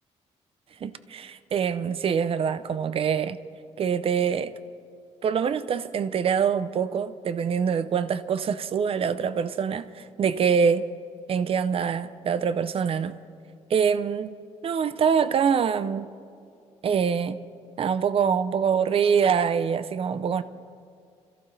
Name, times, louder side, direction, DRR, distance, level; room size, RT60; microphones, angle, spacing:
voice 1, 0.8-3.4 3.8-4.5 5.2-10.8 11.3-13.1 13.7-14.3 14.6-16.1 16.8-17.4 17.8-20.4, right 7 dB, 50° right, 0.6 m, -24 dB
26.0 x 14.5 x 3.3 m
cardioid pair, 120°, 12 cm